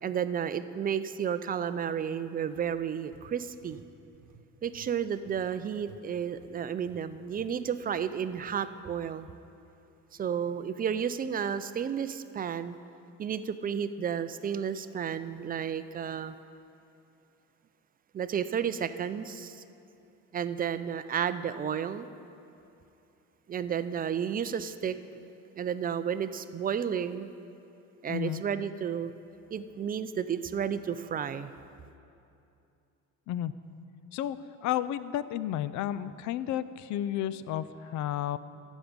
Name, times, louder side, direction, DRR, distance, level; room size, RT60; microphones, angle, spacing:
voice 1, 0.0-3.8 4.6-9.3 10.2-12.8 13.2-16.3 18.1-19.6 20.3-22.1 23.5-25.0 25.6-27.3 28.0-29.1 29.5-31.5, right 8 dB, 30° right, 12 dB, 0.4 m, -32 dB
sound 1, 3.1-6.0 6.3-6.5 6.9-7.0 7.3-7.5 7.8-8.5, right 8 dB, 70° right, 1.0 m, -56 dB
voice 2, 28.1-28.4 33.3-33.5 34.1-38.4, left 11 dB, 60° left, 15 dB, 0.5 m, -32 dB
15.0 x 6.2 x 5.2 m, 2.7 s
cardioid pair, 105°, 32 cm